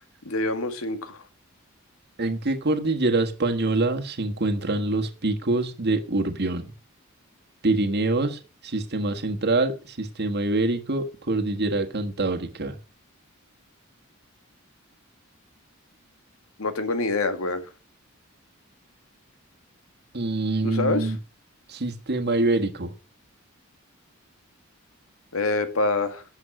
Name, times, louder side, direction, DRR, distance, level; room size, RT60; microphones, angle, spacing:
voice 1, 0.3-1.2 16.6-17.7 20.6-21.1 25.3-26.2, left 2 dB, 85° left, 8 dB, 1.9 m, -26 dB
voice 2, 2.2-6.7 7.6-12.8 20.1-21.2 21.7-22.9, right 2 dB, 50° right, 7 dB, 1.5 m, -25 dB
11.5 x 7.3 x 6.2 m, 0.33 s
head